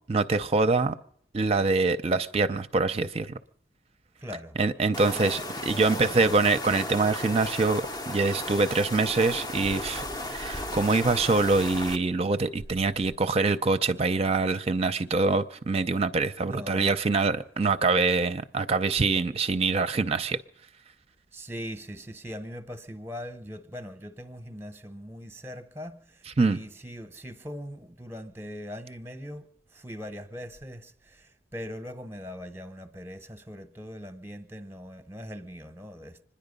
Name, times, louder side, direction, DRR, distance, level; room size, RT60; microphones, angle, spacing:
voice 1, 0.1-0.9 1.3-3.3 4.6-20.4 26.4-26.6, right 3 dB, 35° right, 0.5 m, -25 dB
voice 2, 4.2-4.6 5.1-6.3 16.4-16.9 21.3-36.2, equal, 15° right, 0.9 m, -41 dB
sound 1, 4.9-12.0, left 1 dB, 25° left, 0.6 m, -35 dB
25.5 x 10.5 x 5.3 m
head